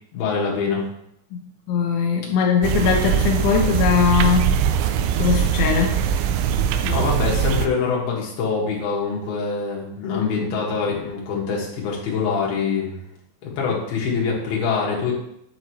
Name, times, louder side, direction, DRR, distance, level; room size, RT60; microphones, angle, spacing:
voice 1, 0.1-0.8 5.6-5.8 6.8-13.0 13.4-15.1, left 5 dB, 60° left, -3 dB, 3.1 m, -24 dB
voice 2, 1.7-4.6 5.2-6.0 10.0-10.3, left 6 dB, 80° left, 0 dB, 2.4 m, -20 dB
sound 1, 2.6-7.7, right 8 dB, 85° right, 2.9 m, -21 dB
8.8 x 7.5 x 3.1 m, 0.78 s
omnidirectional pair, 5.6 m